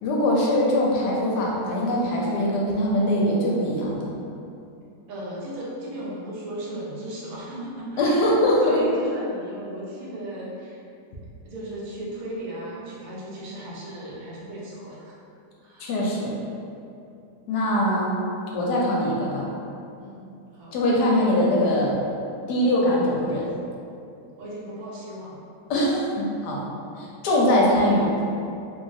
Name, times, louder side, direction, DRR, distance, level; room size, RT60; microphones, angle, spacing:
voice 1, 0.0-4.1 8.0-8.6 15.8-16.4 17.5-18.1 18.5-19.5 20.7-21.9 22.5-23.5 25.7-26.6 27.0-28.1, left 1 dB, 80° left, -4 dB, 1.2 m, -22 dB
voice 2, 5.1-8.2 8.6-10.8 11.4-15.2 15.6-16.1 20.0-20.2 20.5-20.8 24.4-25.4, right 1 dB, 60° right, -6 dB, 1.0 m, -36 dB
3.2 x 2.3 x 2.6 m, 2.6 s
omnidirectional pair, 1.8 m